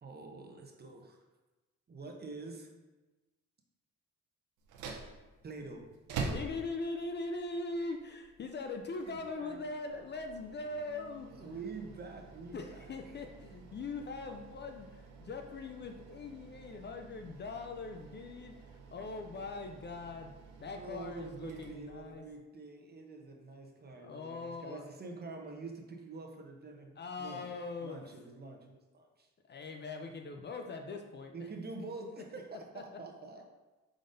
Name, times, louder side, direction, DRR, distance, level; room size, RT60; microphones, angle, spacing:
voice 1, 0.0-1.2 1.9-2.7 5.4-5.9 9.1-9.7 11.3-13.2 20.7-27.5 27.8-29.3 31.3-33.4, right 3 dB, 35° right, 2 dB, 0.8 m, -46 dB
sound 1, 4.6-22.4, right 4 dB, 85° right, 0.7 m, -48 dB
voice 2, 6.3-11.6 12.5-18.6 18.9-20.3 20.6-22.2 23.9-24.8 27.0-28.0 29.5-31.3 32.7-32.8, left 3 dB, 35° left, 5 dB, 0.4 m, -41 dB
5.1 x 3.9 x 2.6 m, 1.1 s
cardioid pair, 90°, 30 cm